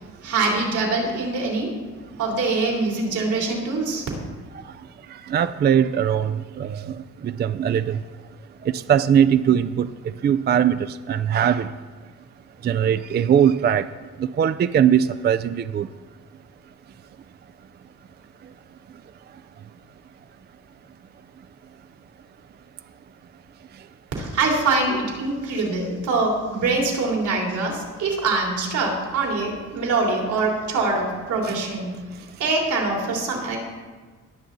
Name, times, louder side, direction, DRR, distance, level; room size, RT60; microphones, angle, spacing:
voice 1, 0.2-1.7 2.2-4.1 24.2-33.6, right 3 dB, 75° right, 3.4 m, -24 dB
voice 2, 5.3-6.8 7.2-8.0 8.7-9.9 10.2-10.7 11.1-11.7 12.6-13.9 14.4-15.9 31.4-31.5, right 9 dB, 35° right, 0.4 m, -20 dB
19.0 x 7.1 x 4.0 m
cardioid pair, 90°, 30 cm